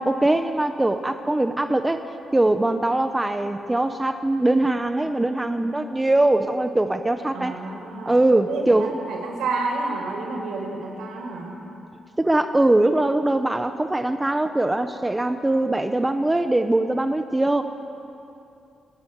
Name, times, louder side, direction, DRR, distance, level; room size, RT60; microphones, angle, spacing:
voice 1, 0.0-2.0 2.3-7.6 8.1-8.9 12.2-17.6, right 2 dB, 10° right, 8 dB, 0.8 m, -21 dB
voice 2, 7.3-8.1 8.5-11.6, right 3 dB, 80° right, -1 dB, 5.8 m, -30 dB
27.0 x 12.0 x 9.2 m, 2.6 s
cardioid pair, 135°, 0 cm